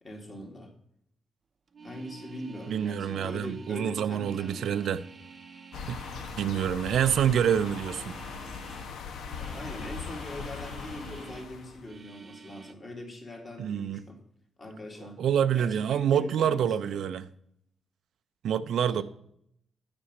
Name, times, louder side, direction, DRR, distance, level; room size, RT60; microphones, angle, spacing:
voice 1, 0.0-0.7 1.8-4.9 9.4-14.2 14.6-15.2 15.5-17.0 18.9-19.0, left 1 dB, 25° left, 2.1 m, -42 dB
sound 1, 1.7-8.9 9.2-11.5 11.8-12.7, right 4 dB, 30° right, 0.6 m, -48 dB
voice 2, 2.7-5.0 5.9-6.0 6.3-8.2 13.6-14.0 15.2-17.3 18.4-19.0, right 9 dB, 70° right, 0.4 m, -27 dB
sound 2, 5.7-11.9, left 6 dB, 85° left, 1.0 m, -40 dB
10.0 x 6.0 x 5.3 m
wide cardioid pair, 175°, 0 cm